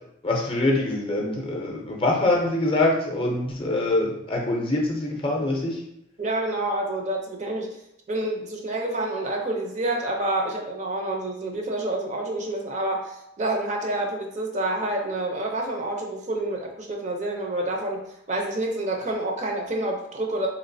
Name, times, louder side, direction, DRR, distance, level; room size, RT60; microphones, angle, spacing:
voice 1, 0.2-5.8, left 2 dB, 25° left, 0 dB, 0.5 m, -24 dB
voice 2, 6.2-7.7 8.1-20.5, right 1 dB, 35° right, 1 dB, 0.5 m, -28 dB
3.5 x 3.0 x 2.6 m, 0.80 s
head